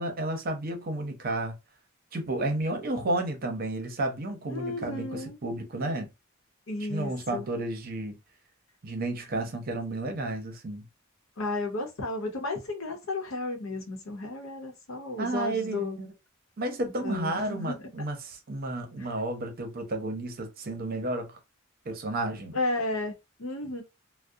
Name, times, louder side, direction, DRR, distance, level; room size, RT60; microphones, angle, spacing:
voice 1, 0.0-1.6 2.1-6.1 6.9-8.1 8.8-10.8 15.2-16.1 16.6-21.4 21.9-22.6, right 2 dB, 45° right, 0.6 m, -32 dB
voice 2, 4.5-5.4 6.7-7.4 11.4-16.0 17.0-17.8 19.0-19.1 22.5-23.1 23.4-23.8, left 2 dB, 85° left, 0.8 m, -33 dB
2.6 x 2.1 x 2.3 m
head